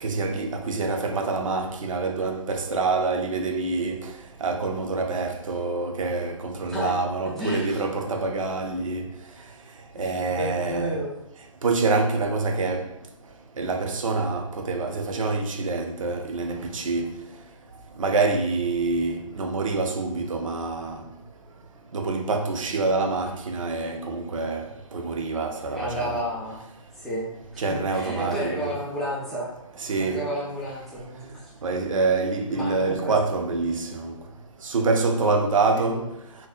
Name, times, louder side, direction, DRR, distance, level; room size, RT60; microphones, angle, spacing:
voice 1, 0.0-4.1 4.4-9.1 10.0-11.0 11.6-12.9 13.6-17.2 18.0-21.0 21.9-24.7 24.9-26.2 27.6-28.7 29.8-30.3 31.6-34.1 34.6-36.1, right 3 dB, 70° right, 0.4 m, -26 dB
voice 2, 6.6-6.9 7.2-7.8 10.0-11.1 25.7-26.6 27.0-27.3 27.7-29.5 30.0-31.4 32.5-33.1 35.8-36.1, equal, ahead, 0.3 m, -31 dB
2.6 x 2.0 x 2.3 m
figure-of-eight pair, 135°, 17 cm